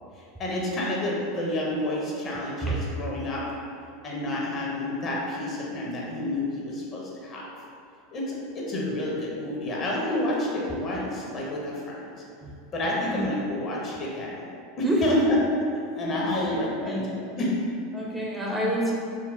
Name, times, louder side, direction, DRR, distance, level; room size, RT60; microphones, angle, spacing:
voice 1, 0.4-3.4 4.0-7.4 8.1-12.1 12.7-14.3 14.8-15.4 15.9-17.5 18.4-18.7, left 1 dB, 40° left, -4 dB, 0.7 m, -29 dB
voice 2, 14.8-15.4 16.2-17.2 17.9-18.9, right 1 dB, 10° right, -4 dB, 0.5 m, -28 dB
3.8 x 2.1 x 2.3 m, 2.4 s
hypercardioid pair, 90°, 0 cm